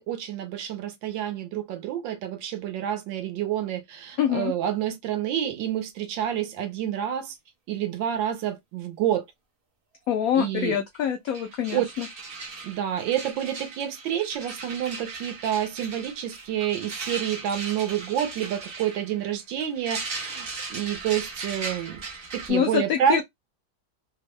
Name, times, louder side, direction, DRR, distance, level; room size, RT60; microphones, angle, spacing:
voice 1, 0.0-7.4 7.7-9.2 10.4-10.8 11.7-11.8 12.6-22.0 22.3-23.2, right 10 dB, 80° right, 1.4 m, -28 dB
voice 2, 4.2-4.5 10.1-12.1 22.5-23.2, left 9 dB, 80° left, 0.7 m, -25 dB
sound 1, 10.9-11.0 11.3-22.5, right 4 dB, 45° right, 0.7 m, -38 dB
3.5 x 2.1 x 3.0 m
omnidirectional pair, 2.0 m